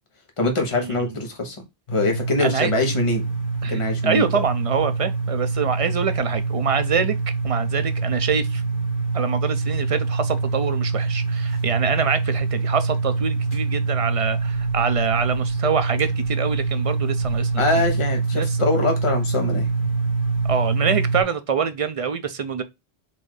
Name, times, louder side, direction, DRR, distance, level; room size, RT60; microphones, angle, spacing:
voice 1, 0.4-1.6 1.9-3.2 3.7-4.4 17.6-19.7, left 2 dB, 30° left, 1.2 m, -23 dB
sound 1, 1.9-21.2, right 4 dB, 55° left, 1.2 m, -25 dB
voice 2, 2.4-2.7 3.6-7.2 7.4-8.6 9.1-17.5 18.3-18.6 20.4-22.6, right 6 dB, 50° right, 0.4 m, -25 dB
4.2 x 2.7 x 4.7 m
omnidirectional pair, 1.1 m